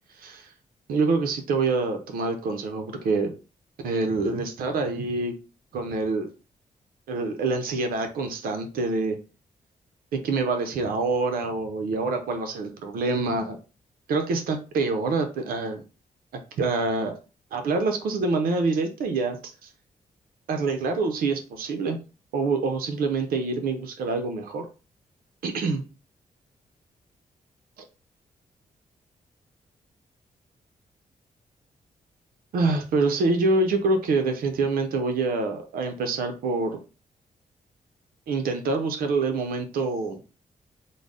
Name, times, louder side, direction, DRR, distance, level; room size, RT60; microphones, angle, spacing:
voice 1, 0.2-0.5 0.9-3.3 3.8-5.3 5.7-6.3 7.1-9.2 10.1-13.6 14.1-15.8 16.6-17.1 17.5-19.5 20.5-22.0 22.3-24.7 25.4-25.8 32.5-36.8 38.3-40.2, right 3 dB, 90° right, 5 dB, 0.6 m, -26 dB
3.8 x 2.0 x 3.6 m, 0.32 s
cardioid pair, 70°, 15 cm